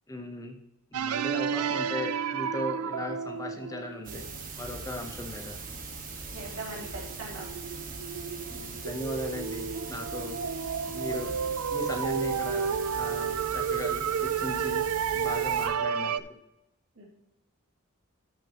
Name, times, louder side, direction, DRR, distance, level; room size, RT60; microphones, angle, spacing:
voice 1, 0.1-0.5 0.9-4.2 4.6-5.6 8.5-10.4 10.9-11.4 11.7-14.8 15.1-16.4, left 1 dB, 15° left, 4 dB, 0.8 m, -37 dB
sound 1, 0.9-4.4 6.1-6.2 6.8-16.2, right 7 dB, 90° right, 0.4 m, -31 dB
sound 2, 4.0-15.7, right 4 dB, 40° right, 1.4 m, -41 dB
voice 2, 6.3-7.5 17.0-17.1, right 2 dB, 70° right, -3 dB, 3.2 m, -40 dB
13.0 x 6.2 x 2.9 m, 0.92 s
head